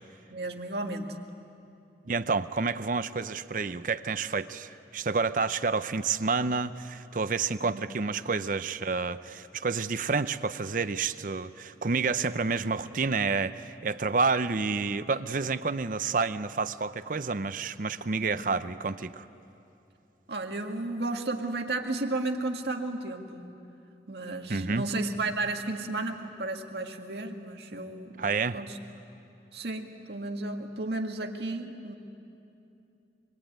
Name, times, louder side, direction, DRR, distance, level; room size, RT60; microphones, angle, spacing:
voice 1, 0.3-1.2 7.6-7.8 18.2-18.4 20.3-23.4 24.1-28.2 28.5-28.8 29.5-32.0, right 2 dB, 70° right, 3 dB, 1.8 m, -33 dB
voice 2, 2.1-19.3 24.5-24.9 28.2-28.6, right 4 dB, 50° right, 12 dB, 0.6 m, -29 dB
25.5 x 23.0 x 9.2 m, 2.7 s
head